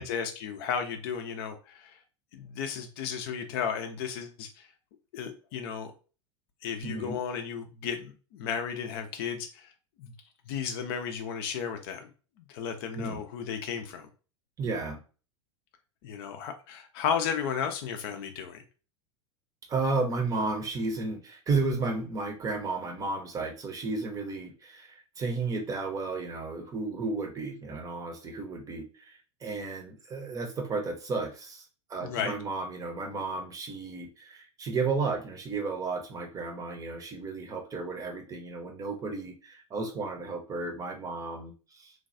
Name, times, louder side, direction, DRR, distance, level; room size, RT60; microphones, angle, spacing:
voice 1, 0.0-2.0 2.3-4.7 5.1-5.9 6.6-9.7 10.0-10.1 10.5-12.1 12.5-14.1 16.0-18.6 32.0-32.3, left 7 dB, 50° left, 7 dB, 0.5 m, -34 dB
voice 2, 6.8-7.2 13.0-13.2 14.6-15.0 19.7-31.6 31.9-41.9, right 3 dB, 20° right, 3 dB, 0.7 m, -33 dB
3.2 x 2.2 x 2.5 m, 0.35 s
figure-of-eight pair, 85°, 16 cm